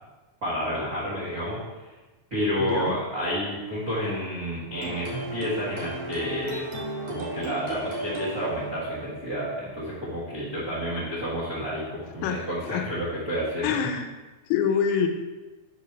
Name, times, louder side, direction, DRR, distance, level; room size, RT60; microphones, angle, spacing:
voice 1, 0.4-1.6 2.3-6.7 7.0-13.8, equal, 80° right, -6 dB, 0.8 m, -30 dB
voice 2, 2.6-3.0 12.2-12.9 13.6-14.1 14.5-15.1, left 7 dB, 80° left, 5 dB, 2.4 m, -26 dB
sound 1, 4.7-10.2, right 2 dB, 55° right, 2.5 m, -36 dB
5.0 x 4.5 x 5.8 m, 1.2 s
omnidirectional pair, 4.5 m